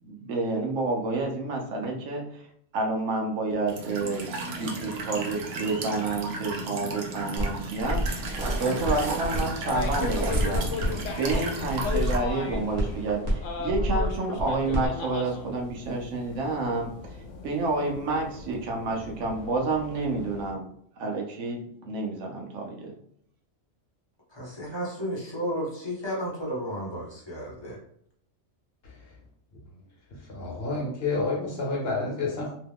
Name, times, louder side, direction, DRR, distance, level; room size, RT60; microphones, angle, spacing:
voice 1, 0.0-2.5 2.7-8.3 8.6-10.7 11.2-17.2 17.4-20.7 21.0-22.9, right 3 dB, 85° right, 1 dB, 1.0 m, -29 dB
Walk footsteps / Chirp tweet / Stream, 3.7-12.2, right 3 dB, 60° right, 0.8 m, -34 dB
sound 1, 7.4-7.5 7.8-9.4 9.7-14.9, equal, 35° right, 0.9 m, -29 dB
sound 2, 9.2-20.5, left 5 dB, 85° left, 1.0 m, -38 dB
voice 2, 24.3-27.8, equal, 25° left, -5 dB, 0.8 m, -33 dB
voice 3, 30.2-32.5, left 3 dB, 55° left, -2 dB, 1.1 m, -29 dB
2.9 x 2.2 x 3.5 m, 0.67 s
omnidirectional pair, 1.3 m